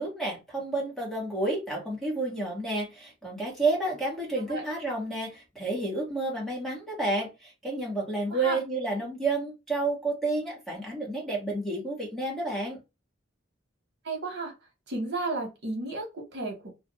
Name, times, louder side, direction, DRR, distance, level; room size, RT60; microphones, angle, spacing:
voice 1, 0.0-12.8, right 2 dB, ahead, 1.3 m, -30 dB
voice 2, 14.0-14.5 14.9-16.1 16.3-16.6, right 2 dB, 60° right, 1.1 m, -32 dB
2.5 x 2.4 x 4.0 m
head